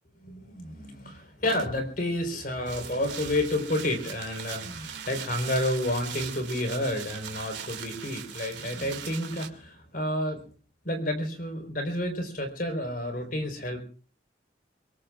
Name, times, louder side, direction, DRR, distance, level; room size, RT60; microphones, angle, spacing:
voice 1, 0.2-10.4 10.8-13.8, left 1 dB, 50° left, 5 dB, 4.3 m, -30 dB
sound 1, 2.7-9.5, right 9 dB, 85° right, 2.3 m, -40 dB
25.0 x 21.5 x 2.5 m, 0.39 s
head